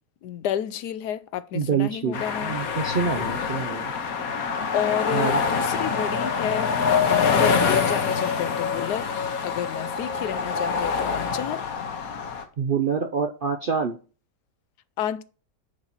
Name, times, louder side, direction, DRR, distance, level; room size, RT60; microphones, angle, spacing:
voice 1, 0.2-2.6 3.2-3.3 4.7-6.7 7.1-9.1 9.4-11.6 15.0-15.2, left 10 dB, 80° left, 1.2 m, -30 dB
voice 2, 1.5-3.9 5.1-5.4 12.6-14.0, right 6 dB, 55° right, 0.6 m, -26 dB
sound 1, 2.1-12.4, left 5 dB, 65° left, 1.4 m, -25 dB
9.7 x 4.1 x 5.9 m
omnidirectional pair, 1.7 m